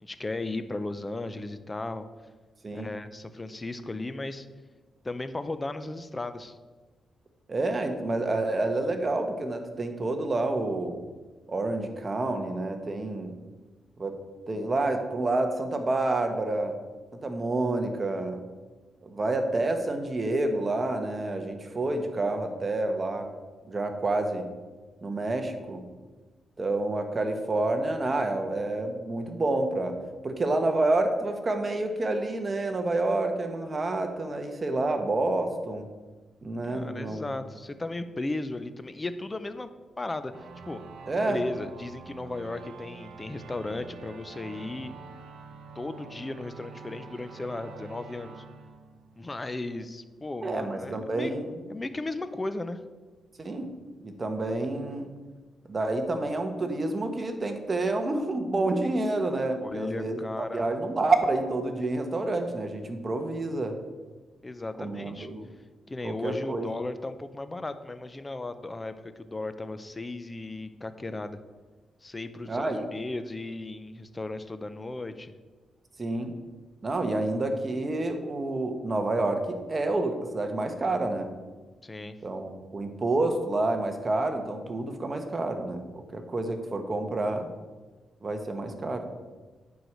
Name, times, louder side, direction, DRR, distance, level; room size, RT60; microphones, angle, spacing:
voice 1, 0.0-2.1 2.7-4.5 5.0-6.6 36.7-39.7 40.0-40.8 41.3-44.9 45.8-48.4 49.1-51.4 51.7-52.8 59.6-60.7 64.4-65.3 65.9-71.4 72.0-75.3 81.8-82.2, left 2 dB, 20° left, 11 dB, 0.6 m, -36 dB
voice 2, 7.5-11.0 11.5-13.4 14.0-14.2 14.5-16.8 17.2-18.4 19.0-23.3 23.7-24.5 25.0-25.9 26.6-29.9 30.2-35.8 36.4-37.4 41.1-41.4 50.4-51.6 53.4-53.7 54.0-55.1 55.7-63.7 64.8-65.5 66.0-66.7 72.5-72.8 76.0-76.3 76.8-81.3 82.2-85.8 86.1-87.5 88.2-89.1, right 2 dB, 30° right, 5 dB, 1.2 m, -28 dB
sound 1, 40.3-49.6, right 5 dB, 80° right, 1.0 m, -46 dB
9.1 x 4.7 x 6.6 m, 1.3 s
cardioid pair, 110°, 0 cm